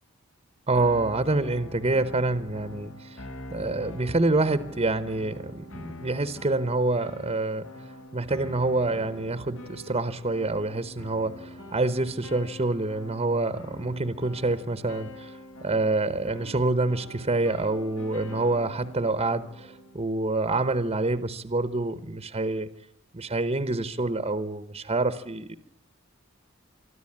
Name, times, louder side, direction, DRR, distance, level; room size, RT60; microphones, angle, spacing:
voice 1, 0.7-3.3 3.5-7.9 8.1-22.7 23.1-25.6, right 2 dB, 30° right, 12 dB, 1.0 m, -27 dB
sound 1, 0.8-20.0, left 1 dB, 80° left, 3.6 m, -44 dB
24.0 x 13.5 x 8.7 m, 0.74 s
head